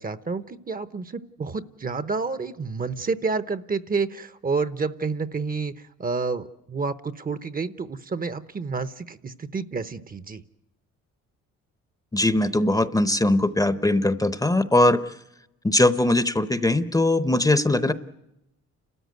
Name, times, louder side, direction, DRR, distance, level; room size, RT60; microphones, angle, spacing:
voice 1, 0.0-10.4, right 4 dB, 30° right, 13 dB, 0.9 m, -29 dB
voice 2, 12.1-15.0 15.6-17.9, left 1 dB, 10° left, 12 dB, 0.8 m, -20 dB
30.0 x 13.5 x 9.3 m, 0.91 s
cardioid pair, 90°, 30 cm